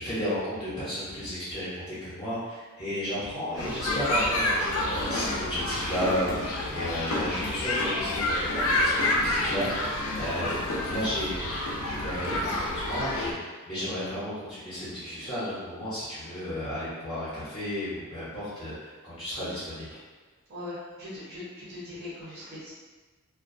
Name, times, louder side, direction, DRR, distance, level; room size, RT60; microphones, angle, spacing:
voice 1, 0.0-10.5 10.8-11.4 11.8-19.9, equal, 25° left, -13 dB, 0.6 m, -33 dB
sound 1, 3.6-13.3, left 1 dB, 65° left, 0.4 m, -28 dB
voice 2, 20.5-22.7, left 2 dB, 50° right, -10 dB, 0.7 m, -40 dB
2.3 x 2.1 x 2.5 m, 1.3 s
head